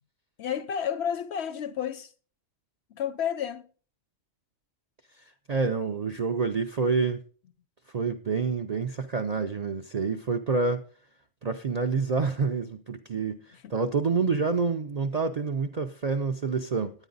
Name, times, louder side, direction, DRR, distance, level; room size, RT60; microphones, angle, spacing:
voice 1, 0.4-2.1 2.9-3.6 13.6-13.7, left 8 dB, 65° left, 0.8 m, -31 dB
voice 2, 5.5-7.2 7.9-10.8 11.4-16.9, right 4 dB, 55° right, 0.4 m, -27 dB
9.9 x 9.3 x 3.9 m
omnidirectional pair, 1.4 m